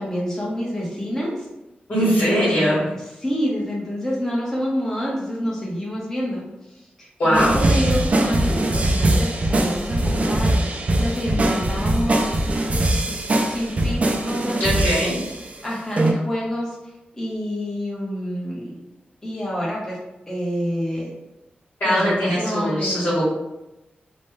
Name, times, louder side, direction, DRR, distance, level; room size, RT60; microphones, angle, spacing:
voice 1, 0.0-1.4 2.0-2.8 3.2-12.4 13.1-14.6 15.6-16.8 17.1-18.7 19.2-20.0 20.3-21.1 21.8-23.0, equal, 10° left, -5 dB, 0.9 m, -28 dB
voice 2, 1.9-2.8 7.2-7.5 14.6-15.2 21.8-23.3, equal, 55° left, -11 dB, 1.3 m, -20 dB
sound 1, 7.3-15.5 16.0-16.1, right 1 dB, 40° right, 0.4 m, -21 dB
3.0 x 2.2 x 3.1 m, 0.96 s
wide cardioid pair, 145°, 4 cm